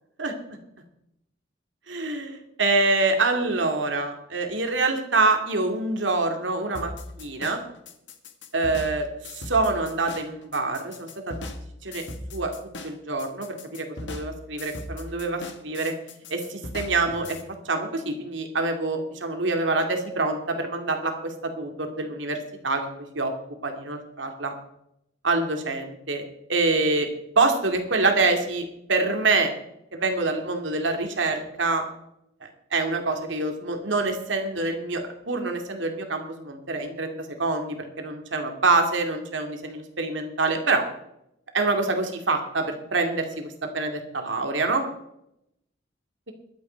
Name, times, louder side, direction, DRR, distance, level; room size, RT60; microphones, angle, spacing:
voice 1, 1.9-6.9 7.2-7.6 8.5-11.4 11.8-12.0 12.3-12.5 12.8-15.9 16.3-17.4 17.6-22.4 22.6-22.9 23.1-23.3 23.6-24.5 25.2-26.2 26.5-27.1 27.4-29.5 29.9-31.8 32.4-35.0 35.3-37.1 37.4-40.8 41.5-44.8, right 3 dB, 85° right, 4 dB, 2.5 m, -26 dB
sound 1, 6.7-17.4, left 2 dB, 75° left, 1.8 m, -38 dB
22.5 x 8.4 x 4.6 m, 0.78 s
head